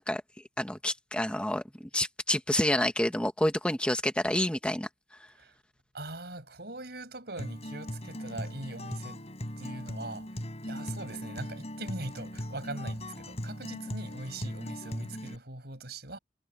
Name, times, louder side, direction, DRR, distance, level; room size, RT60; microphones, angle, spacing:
voice 1, 0.6-1.6 1.9-4.9, left 1 dB, 5° left, 1.1 m, -28 dB
voice 2, 5.9-9.2 9.6-10.3 10.6-16.2, right 2 dB, 65° right, 7.6 m, -41 dB
Acoustic guitar, 7.4-15.4, equal, 40° left, 5.1 m, -39 dB
head